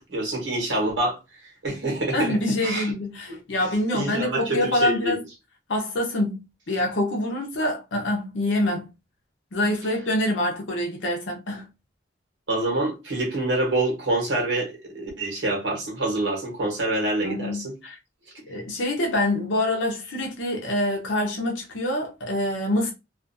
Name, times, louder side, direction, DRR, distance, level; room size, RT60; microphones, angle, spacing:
voice 1, 0.1-2.3 2.6-2.9 3.3-3.4 3.9-5.2 12.5-17.7, right 2 dB, 85° right, 1.1 m, -26 dB
voice 2, 2.1-5.2 5.7-8.9 9.5-11.7 17.2-18.0 18.5-22.9, left 1 dB, 90° left, 0.7 m, -26 dB
2.4 x 2.4 x 2.5 m
head